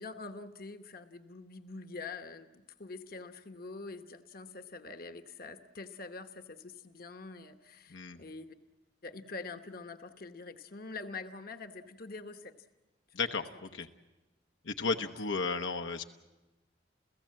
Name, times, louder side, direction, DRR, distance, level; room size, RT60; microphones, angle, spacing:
voice 1, 0.0-8.5 9.0-12.5 13.2-13.3 15.0-15.1, left 3 dB, 50° left, 8 dB, 1.0 m, -45 dB
voice 2, 7.9-8.2 13.1-13.9 14.6-16.0, left 4 dB, 80° left, 6 dB, 1.0 m, -34 dB
29.5 x 16.0 x 7.6 m, 1.1 s
head